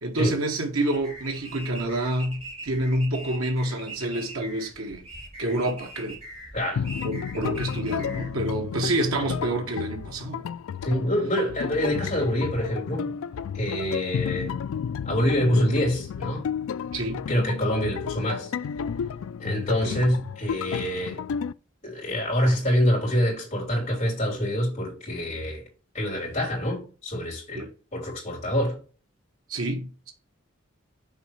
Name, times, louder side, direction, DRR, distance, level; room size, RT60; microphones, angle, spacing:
voice 1, 0.0-5.0 5.4-6.2 7.0-10.4 16.9-17.2 19.8-20.0 27.5-27.7 29.5-30.1, right 1 dB, 90° right, 1.4 m, -28 dB
sound 1, 0.9-8.3, right 1 dB, 30° right, 2.7 m, -42 dB
sound 2, 6.8-21.5, left 7 dB, 80° left, 0.3 m, -32 dB
voice 2, 10.8-13.2 13.5-14.5 15.0-16.5 17.3-18.5 19.4-21.2 21.8-25.6 25.9-28.8, equal, 30° left, 3.6 m, -26 dB
6.5 x 4.0 x 4.6 m
head